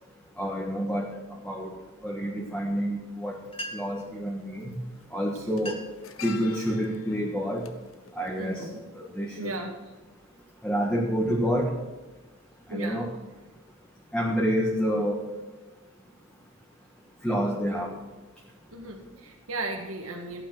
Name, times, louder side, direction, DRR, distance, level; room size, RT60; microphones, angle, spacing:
voice 1, 0.4-1.1 1.4-1.7 2.0-3.4 3.7-4.7 5.1-5.8 6.2-7.7 8.1-8.7 8.9-9.6 10.6-11.8 12.7-13.1 14.1-15.2 17.2-17.9, equal, 5° left, -3 dB, 1.6 m, -28 dB
sound 1, 3.1-3.2 4.4-4.6 4.9-9.2 9.5-9.7, left 6 dB, 70° left, 1.1 m, -46 dB
sound 2, 3.2-3.3 3.5-4.1 5.0-5.1 5.5-6.1 6.6-6.9 7.5-7.8 8.3-9.6, equal, 25° left, 1.6 m, -42 dB
voice 2, 8.4-8.9 9.4-9.8 12.7-13.1 18.7-20.4, right 2 dB, 85° right, 2 dB, 1.7 m, -36 dB
15.0 x 9.0 x 6.1 m, 1.2 s
head